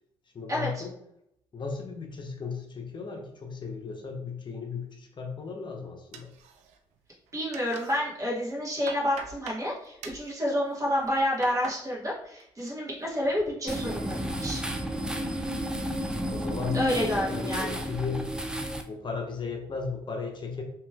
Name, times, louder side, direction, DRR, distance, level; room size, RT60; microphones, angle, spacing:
voice 1, 0.3-0.9 1.5-6.3 16.3-18.3 18.9-20.6, left 5 dB, 45° left, 2 dB, 0.8 m, -35 dB
sound 1, 6.1-7.0 7.3-8.0 8.4-9.7 10.0-10.3 10.9-11.8 12.2-12.7 13.1-13.5, right 6 dB, 90° right, 0.4 m, -44 dB
voice 2, 7.3-14.6 16.7-17.8, equal, 30° right, -5 dB, 1.4 m, -29 dB
sound 2, 13.7-18.8, equal, 5° right, 0.4 m, -32 dB
3.0 x 3.0 x 2.3 m, 0.76 s
supercardioid pair, 65°, 11 cm